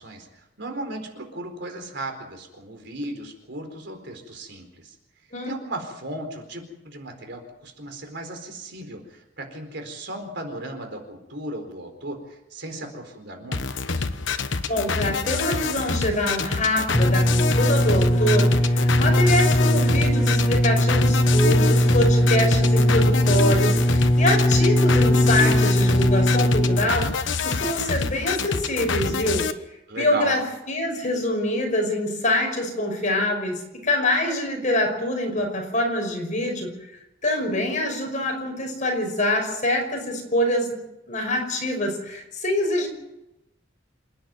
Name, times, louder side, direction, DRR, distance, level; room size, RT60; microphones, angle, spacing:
voice 1, 0.0-4.9 5.4-13.8 29.9-30.4, right 1 dB, 65° right, 5 dB, 4.4 m, -36 dB
sound 1, 13.5-29.5, left 4 dB, 70° left, 1.2 m, -27 dB
voice 2, 14.7-27.1 27.4-29.5 30.0-30.4 30.7-36.7 37.2-40.8 41.1-42.9, left 1 dB, 40° left, 2 dB, 5.7 m, -25 dB
sound 2, 16.9-27.1 27.9-28.0, equal, 20° left, 1.0 m, -19 dB
28.0 x 10.5 x 9.3 m, 0.90 s
head